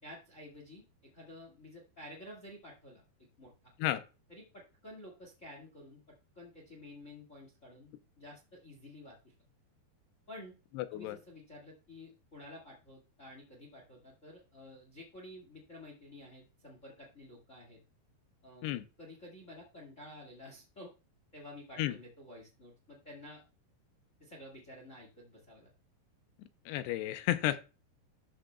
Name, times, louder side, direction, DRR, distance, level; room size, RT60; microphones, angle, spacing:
voice 1, 0.0-3.7 4.3-6.0 6.3-9.3 10.3-10.5 10.9-17.8 18.4-20.9 21.3-23.4 24.2-25.7, left 1 dB, 55° left, -1 dB, 0.8 m, -51 dB
voice 2, 10.8-11.2 18.6-18.8 21.8-22.0 26.7-27.6, left 14 dB, 85° left, 10 dB, 2.7 m, -32 dB
13.0 x 6.2 x 2.2 m, 0.31 s
omnidirectional pair, 4.8 m